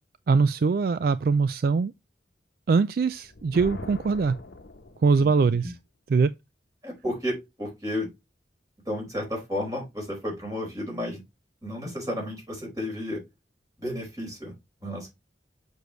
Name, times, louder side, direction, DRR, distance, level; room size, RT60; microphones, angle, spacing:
voice 1, 0.3-1.9 2.7-4.4 5.0-5.7 6.1-6.3, right 4 dB, 55° right, 0.3 m, -22 dB
Thunder, 3.1-5.4, left 2 dB, 65° left, 1.0 m, -42 dB
voice 2, 5.2-5.5 6.8-8.1 8.8-11.2 11.6-13.2 13.8-14.5 14.8-15.1, left 1 dB, 20° right, 4.7 m, -32 dB
6.9 x 6.4 x 3.1 m
head